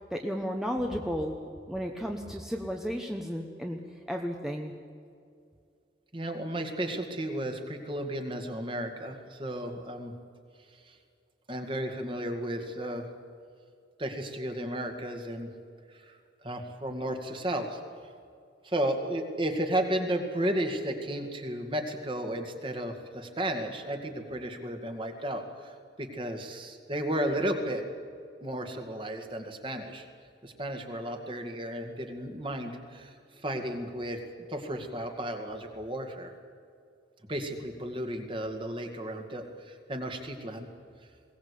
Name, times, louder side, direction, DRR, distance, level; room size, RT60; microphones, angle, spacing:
voice 1, 0.1-1.4 1.7-3.8 4.1-4.7, equal, 5° right, 2 dB, 1.1 m, -33 dB
voice 2, 6.1-10.1 10.9-11.0 11.5-13.0 14.0-15.5 15.9-16.1 16.4-17.8 18.6-27.8 28.4-30.1 30.4-34.2 34.5-36.3 37.3-40.7, right 1 dB, 30° right, 4 dB, 2.2 m, -33 dB
22.0 x 17.5 x 8.5 m, 2.4 s
head